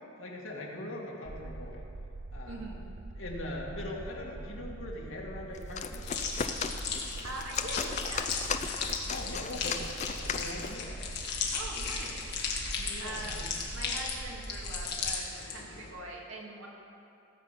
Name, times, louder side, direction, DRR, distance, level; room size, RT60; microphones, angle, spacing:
voice 1, 0.2-1.8 2.3-2.6 3.1-6.2 9.0-9.8 10.2-11.0 12.8-13.5, left 1 dB, 75° left, -2 dB, 2.0 m, -41 dB
sound 1, 1.2-15.3, right 2 dB, 40° right, 0.5 m, -43 dB
voice 2, 2.5-3.0 7.0-8.4 11.5-12.5 13.0-13.4 13.7-16.7, right 2 dB, 80° right, -2 dB, 2.2 m, -43 dB
sound 2, 5.5-10.8, left 6 dB, 35° left, 0.4 m, -37 dB
sound 3, 6.0-15.9, left 5 dB, 55° left, 1.7 m, -36 dB
16.5 x 5.6 x 7.5 m, 2.7 s
head